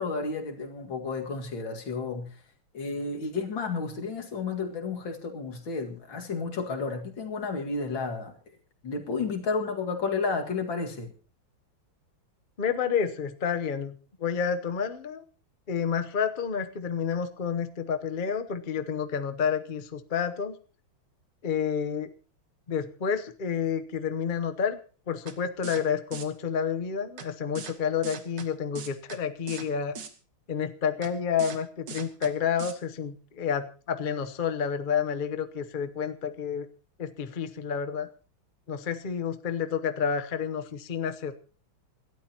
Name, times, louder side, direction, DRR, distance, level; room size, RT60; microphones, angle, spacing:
voice 1, 0.0-2.3 2.7-8.4 8.8-11.1, left 4 dB, 70° left, 3 dB, 2.8 m, -32 dB
voice 2, 12.6-15.2 15.7-20.6 21.4-22.1 22.7-24.8 25.1-30.0 30.5-36.7 37.0-38.1 38.7-41.3, left 7 dB, 40° left, 8 dB, 0.7 m, -29 dB
sound 1, 25.3-25.4 25.6-25.8 26.1-26.2 27.2-27.3 27.5-27.7 28.0-28.5 28.7-29.2 29.5-29.7 29.9-30.1 31.0-31.1 31.4-31.6 31.9-32.3 32.6-32.7, right 6 dB, 60° right, 2.0 m, -39 dB
26.5 x 12.5 x 2.9 m, 0.37 s
omnidirectional pair, 2.2 m